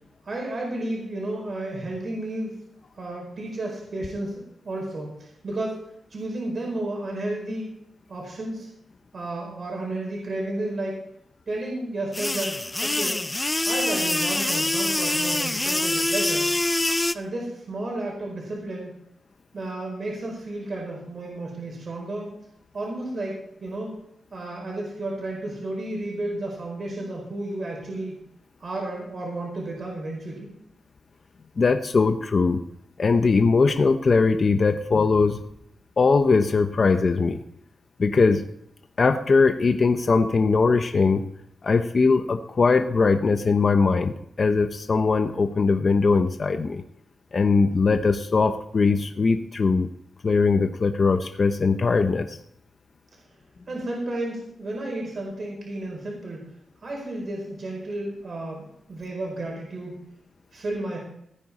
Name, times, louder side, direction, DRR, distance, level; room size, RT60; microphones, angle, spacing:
voice 1, 0.2-2.5 2.9-5.8 6.1-7.7 8.1-8.7 9.1-11.0 11.5-13.3 13.6-16.5 17.1-19.1 19.5-22.3 22.7-24.0 24.3-28.2 28.6-30.5 53.7-56.5 56.8-60.1 60.5-61.0, right 2 dB, 40° right, -1 dB, 4.7 m, -32 dB
sound 1, 12.1-17.1, left 2 dB, 15° left, 0.4 m, -25 dB
voice 2, 31.6-32.6 33.0-35.4 36.0-37.4 38.0-38.4 39.0-41.2 41.6-46.8 47.3-49.9 50.2-52.4, left 4 dB, 35° left, 7 dB, 0.8 m, -20 dB
16.5 x 9.7 x 4.2 m, 0.72 s
wide cardioid pair, 165°, 0 cm